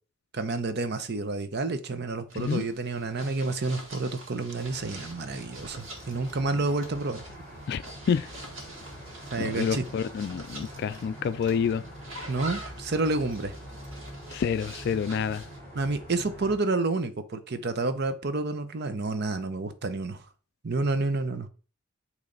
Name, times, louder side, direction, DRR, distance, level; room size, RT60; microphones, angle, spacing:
voice 1, 0.3-7.2 9.3-9.8 12.3-13.5 15.7-20.2 20.6-21.5, right 3 dB, 55° right, 0.7 m, -29 dB
sound 1, 2.3-15.6, right 1 dB, 85° right, 1.9 m, -46 dB
sound 2, 4.6-16.6, equal, 10° left, 3.1 m, -44 dB
voice 2, 9.4-11.8 14.3-15.5, left 6 dB, 55° left, 0.3 m, -28 dB
8.5 x 3.2 x 3.9 m
head